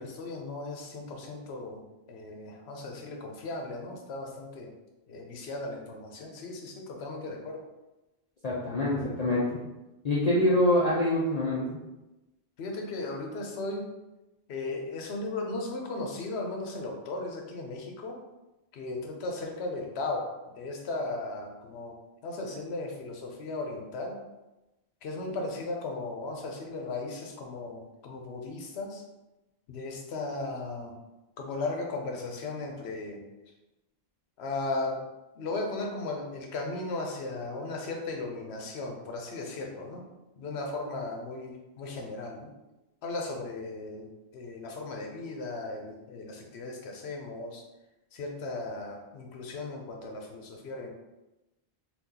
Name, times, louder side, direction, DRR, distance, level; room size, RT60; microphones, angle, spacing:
voice 1, 0.0-1.8 2.1-4.7 5.1-7.6 12.6-13.9 14.5-18.2 18.7-22.0 22.2-24.2 25.0-29.0 29.7-30.9 31.4-33.2 34.4-35.0 35.4-40.0 40.4-42.5 43.0-47.6 48.1-50.9, left 2 dB, 85° left, 2 dB, 0.9 m, -36 dB
voice 2, 8.4-9.6 10.0-11.8, left 1 dB, 45° left, -7 dB, 0.6 m, -25 dB
2.9 x 2.4 x 3.7 m, 1.0 s
omnidirectional pair, 1.1 m